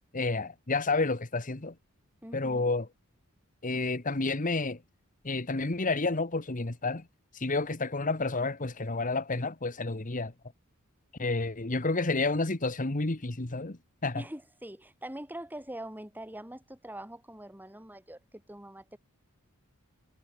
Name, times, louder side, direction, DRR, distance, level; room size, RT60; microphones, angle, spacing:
voice 1, 0.1-1.7 2.3-2.9 3.6-4.8 5.2-7.0 7.3-10.3 11.2-14.2, left 3 dB, 35° left, 1.4 m, -30 dB
voice 2, 2.2-2.7 14.1-19.0, right 1 dB, 10° right, 7.7 m, -43 dB
head